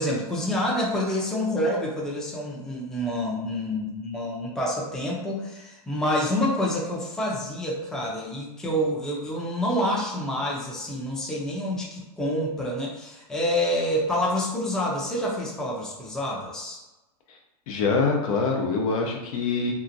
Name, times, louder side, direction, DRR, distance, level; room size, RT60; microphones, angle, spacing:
voice 1, 0.0-16.8, left 1 dB, 5° left, -3 dB, 0.6 m, -27 dB
voice 2, 17.7-19.7, left 4 dB, 60° left, 1 dB, 0.7 m, -24 dB
2.8 x 2.4 x 2.5 m, 1.0 s
hypercardioid pair, 110°, 20 cm